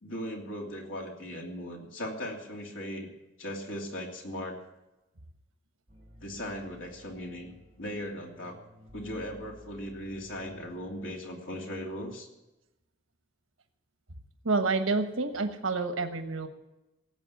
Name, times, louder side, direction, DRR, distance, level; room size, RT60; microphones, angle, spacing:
voice 1, 0.0-3.1 3.4-4.6 6.2-8.6 8.9-12.3, equal, 80° left, 0 dB, 2.9 m, -38 dB
sound 1, 5.9-11.1, equal, 30° right, 4.3 m, -54 dB
voice 2, 14.4-16.5, right 3 dB, 90° right, 7 dB, 1.3 m, -28 dB
17.0 x 7.9 x 8.4 m, 0.97 s
head